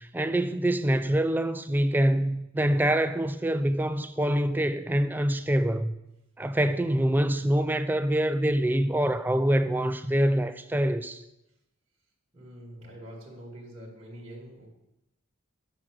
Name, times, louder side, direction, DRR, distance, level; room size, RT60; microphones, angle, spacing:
voice 1, 0.0-5.9 6.4-11.2, right 1 dB, 10° right, 0.3 m, -25 dB
voice 2, 12.3-14.7, equal, 30° right, 1.7 m, -45 dB
7.9 x 5.9 x 6.2 m
head